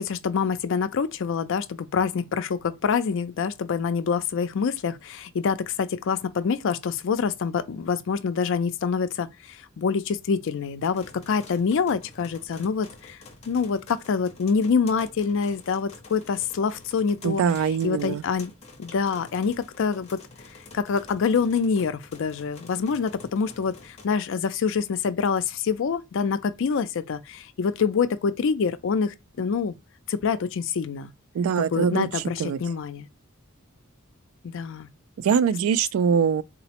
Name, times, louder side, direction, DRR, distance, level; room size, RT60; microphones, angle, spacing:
voice 1, 0.0-13.2 13.5-17.4 17.8-18.5 18.8-20.2 20.7-29.7 30.1-31.1 31.7-33.1 34.4-34.9, left 5 dB, 65° left, 0.4 m, -26 dB
sound 1, 10.9-24.1, left 3 dB, 30° left, 0.7 m, -48 dB
voice 2, 17.2-18.2 31.3-32.6 35.2-36.4, right 7 dB, 75° right, 0.3 m, -23 dB
4.0 x 2.0 x 2.8 m
head